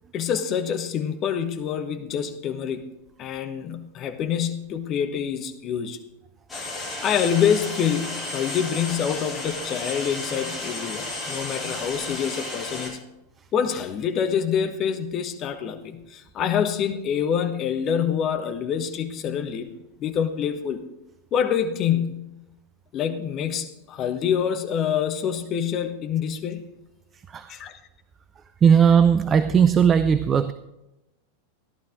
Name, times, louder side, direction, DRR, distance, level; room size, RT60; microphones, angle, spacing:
voice 1, 0.1-2.9 3.2-6.0 7.0-13.0 13.5-19.7 20.0-20.8 21.3-22.3 22.9-26.7 27.5-27.7, left 8 dB, 30° left, 7 dB, 1.2 m, -26 dB
sound 1, 6.5-12.9, left 2 dB, 10° left, 4.0 m, -33 dB
voice 2, 28.6-30.5, right 7 dB, 25° right, 13 dB, 0.5 m, -17 dB
14.5 x 11.5 x 3.7 m, 0.95 s
figure-of-eight pair, 90°, 0 cm